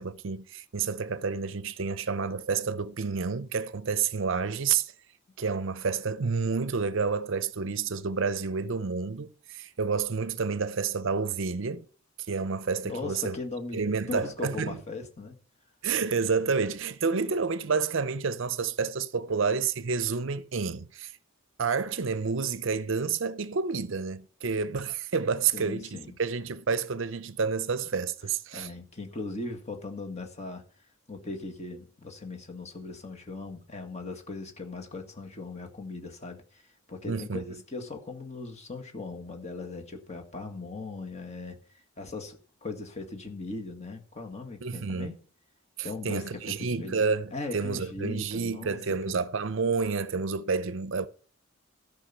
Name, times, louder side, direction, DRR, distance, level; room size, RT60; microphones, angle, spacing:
voice 1, 0.0-4.9 5.4-11.8 12.3-13.4 13.7-14.8 15.8-21.1 21.6-28.7 37.1-37.4 44.6-45.1 46.0-51.1, right 5 dB, 60° right, 0.6 m, -29 dB
voice 2, 12.8-13.8 14.1-15.3 25.5-26.2 28.5-30.6 31.1-45.1 45.8-47.0 47.3-48.8 49.1-49.2, left 3 dB, 30° left, 1.8 m, -39 dB
13.5 x 5.7 x 5.6 m
head